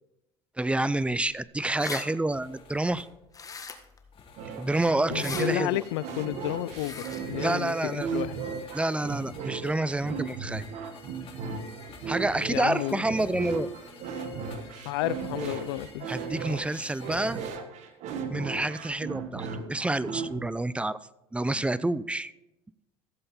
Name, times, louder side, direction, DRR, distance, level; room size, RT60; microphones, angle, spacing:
voice 1, 0.6-3.1 4.6-5.8 7.4-8.2 8.7-10.6 12.1-13.7 16.1-17.4 18.3-21.0 21.3-22.3, right 2 dB, 10° right, 18 dB, 0.5 m, -28 dB
sound 1, 1.3-1.4 1.6-2.0 3.3-4.0 5.1-5.5 6.7-7.2, left 5 dB, 25° left, 1.5 m, -38 dB
sound 2, 2.3-17.5, left 4 dB, 45° left, 2.9 m, -50 dB
sound 3, 4.4-20.5, right 5 dB, 60° right, 1.5 m, -36 dB
voice 2, 5.1-8.4 12.5-13.0 14.8-16.1, left 16 dB, 85° left, 18 dB, 0.5 m, -31 dB
15.0 x 7.7 x 4.4 m, 0.94 s
supercardioid pair, 85°, 13 cm